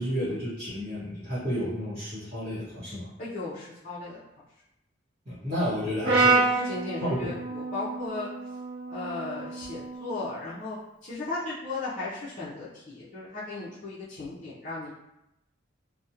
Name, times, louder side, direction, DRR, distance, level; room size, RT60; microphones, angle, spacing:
voice 1, 0.0-3.1 5.3-6.7 7.0-7.3, equal, 30° right, -13 dB, 0.8 m, -31 dB
voice 2, 3.2-4.2 6.5-8.3 8.9-10.8 11.0-14.9, left 3 dB, 40° left, -9 dB, 0.5 m, -36 dB
Brass instrument, 6.0-10.3, right 3 dB, 80° right, 0.6 m, -28 dB
2.4 x 2.0 x 2.7 m, 0.84 s
head